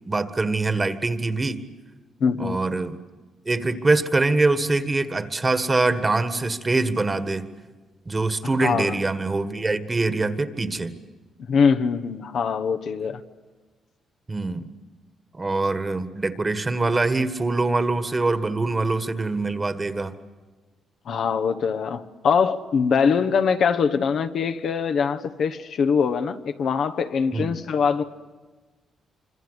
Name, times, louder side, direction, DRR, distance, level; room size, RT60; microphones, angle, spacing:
voice 1, 0.1-1.6 2.4-3.0 3.5-7.5 8.1-11.0 14.3-14.7 15.4-20.1 27.3-27.5, right 3 dB, 25° right, 1.7 m, -24 dB
voice 2, 2.2-2.6 8.6-9.0 11.5-13.2 21.1-28.0, left 6 dB, 65° left, 1.2 m, -23 dB
26.0 x 25.5 x 8.2 m
cardioid pair, 95°, 0 cm